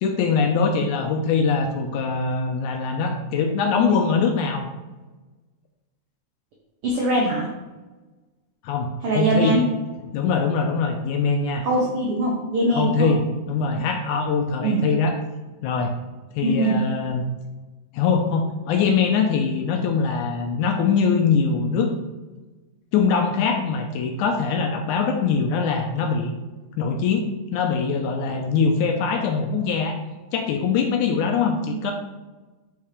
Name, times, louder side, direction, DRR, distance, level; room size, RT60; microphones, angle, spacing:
voice 1, 0.0-4.7 8.6-9.6 10.1-11.7 12.7-13.2 13.5-15.1 15.6-15.9 16.4-17.2 17.9-21.9 22.9-26.3 26.8-30.0 30.3-31.9, left 5 dB, 80° left, 4 dB, 1.8 m, -22 dB
voice 2, 6.8-7.5 9.0-9.6 11.6-13.1 14.6-14.8 16.4-16.7 31.7-31.8, right 2 dB, 80° right, -3 dB, 1.3 m, -22 dB
5.7 x 3.6 x 4.8 m, 1.2 s
omnidirectional pair, 3.8 m